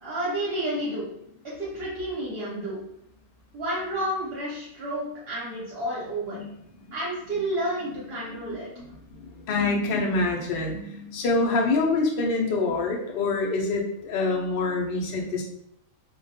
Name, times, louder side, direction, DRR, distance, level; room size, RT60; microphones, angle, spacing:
voice 1, 0.0-1.1 1.4-2.8 3.5-6.4 6.9-8.7, right 1 dB, 50° right, -8 dB, 0.8 m, -30 dB
voice 2, 8.5-8.8 9.1-15.4, left 3 dB, 65° left, -1 dB, 0.5 m, -26 dB
2.3 x 2.2 x 2.6 m, 0.73 s
omnidirectional pair, 1.5 m